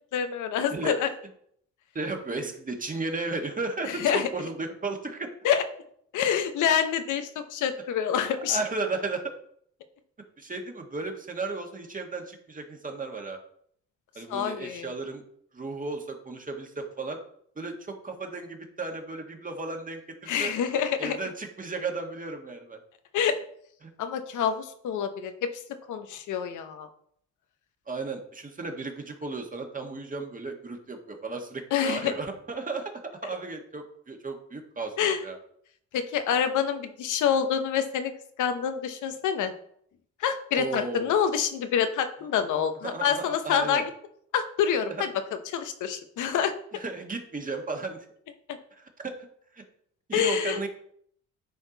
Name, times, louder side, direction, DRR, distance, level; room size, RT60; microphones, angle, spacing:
voice 1, 0.1-1.1 3.9-4.3 5.4-5.6 6.1-8.6 14.3-14.9 20.3-21.2 23.1-23.4 24.0-25.5 25.9-26.9 31.7-32.1 35.0-35.2 35.9-38.1 38.4-39.5 40.2-43.9 44.3-46.5 48.5-48.6 50.1-50.7, left 8 dB, 80° left, 8 dB, 1.0 m, -27 dB
voice 2, 1.9-5.3 8.5-9.3 10.4-13.4 14.1-15.2 15.5-17.2 17.6-20.5 21.0-22.8 23.8-23.9 27.9-32.9 33.2-35.4 40.5-41.1 42.8-43.8 45.0-45.1 46.7-48.1 48.8-49.3 49.5-49.6 50.1-50.7, right 3 dB, 25° right, 3 dB, 1.6 m, -34 dB
11.0 x 4.4 x 4.0 m, 0.66 s
cardioid pair, 90°, 30 cm